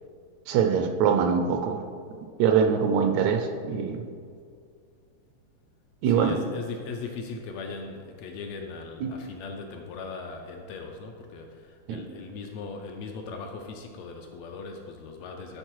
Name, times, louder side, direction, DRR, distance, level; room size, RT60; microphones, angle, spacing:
voice 1, 0.5-1.8 2.4-4.0 6.0-6.4 9.0-9.1 11.9-12.0, right 7 dB, 80° right, 5 dB, 1.8 m, -23 dB
voice 2, 6.1-15.6, left 4 dB, 75° left, 3 dB, 1.6 m, -39 dB
11.0 x 4.0 x 4.6 m, 2.2 s
omnidirectional pair, 3.4 m